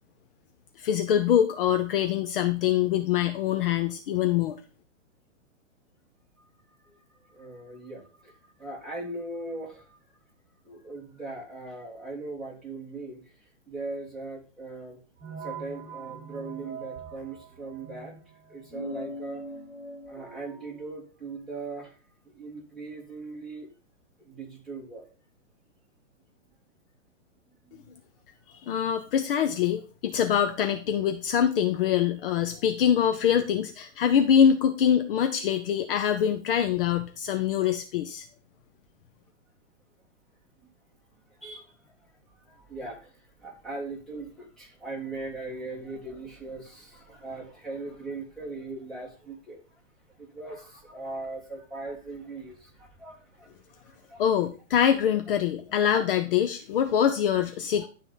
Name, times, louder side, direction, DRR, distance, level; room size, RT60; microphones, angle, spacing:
voice 1, 0.8-4.6 28.7-38.3 54.2-57.9, left 9 dB, 45° left, 7 dB, 0.8 m, -24 dB
voice 2, 7.3-10.0 10.6-13.3 13.7-15.0 15.4-18.2 18.5-19.4 20.1-22.0 22.2-23.7 24.2-25.1 27.5-27.9 40.6-40.7 41.3-49.8 50.2-54.2 55.9-56.0 57.8-57.9, right 3 dB, ahead, -5 dB, 2.8 m, -40 dB
sound 1, 15.2-20.9, right 1 dB, 20° right, 3.5 m, -41 dB
11.5 x 3.9 x 5.6 m, 0.36 s
hypercardioid pair, 145°, 38 cm